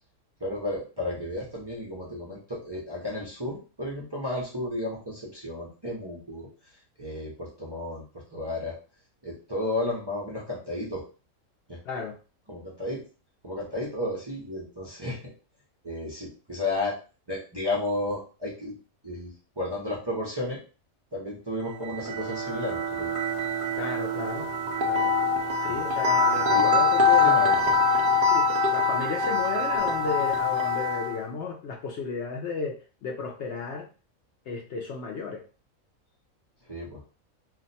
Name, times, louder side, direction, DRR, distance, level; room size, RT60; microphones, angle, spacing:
voice 1, 0.4-6.5 7.0-8.0 8.3-8.7 9.2-11.0 11.7-11.8 12.5-13.0 13.4-15.3 15.8-17.0 17.3-18.7 19.0-20.6 21.1-23.1 25.7-25.8 26.5-26.8 27.2-27.7 36.7-37.0, left 1 dB, 25° right, -5 dB, 0.6 m, -33 dB
sound 1, 21.7-31.2, left 3 dB, 80° right, 0.4 m, -24 dB
voice 2, 23.8-24.5 24.9-25.1 25.6-27.4 28.3-33.9 34.5-35.4, left 4 dB, 65° left, 1 dB, 0.7 m, -34 dB
2.5 x 2.1 x 3.9 m, 0.35 s
omnidirectional pair, 1.4 m